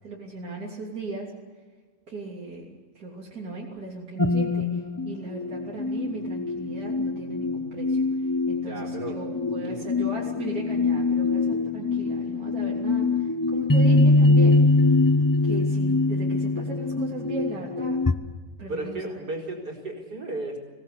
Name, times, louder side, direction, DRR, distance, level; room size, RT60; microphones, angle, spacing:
voice 1, 0.0-1.3 2.1-2.7 2.9-14.6 15.4-18.0 18.6-19.0, right 3 dB, 65° right, -4 dB, 3.8 m, -37 dB
sound 1, 4.2-18.1, left 3 dB, 20° left, 0.5 m, -23 dB
voice 2, 8.6-9.2 9.6-9.9 18.7-20.6, right 2 dB, 85° right, -1 dB, 4.9 m, -34 dB
25.0 x 17.5 x 8.4 m, 1.4 s
omnidirectional pair, 1.7 m